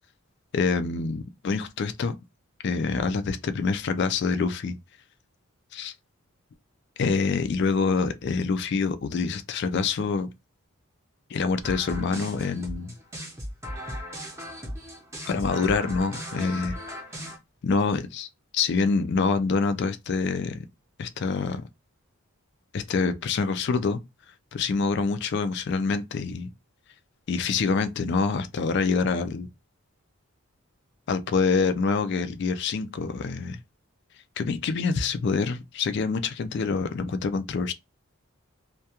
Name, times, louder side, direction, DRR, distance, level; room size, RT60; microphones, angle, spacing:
voice 1, 0.5-2.2 2.6-4.8 5.7-5.9 7.0-10.3 11.3-12.9 15.3-16.8 17.6-18.3 18.5-20.6 21.0-21.6 22.7-24.0 24.5-26.5 27.3-29.5 31.1-33.6 34.4-37.7, left 4 dB, 50° left, 0.3 m, -26 dB
sound 1, 11.6-17.4, equal, 15° right, 0.6 m, -37 dB
2.3 x 2.2 x 2.8 m
head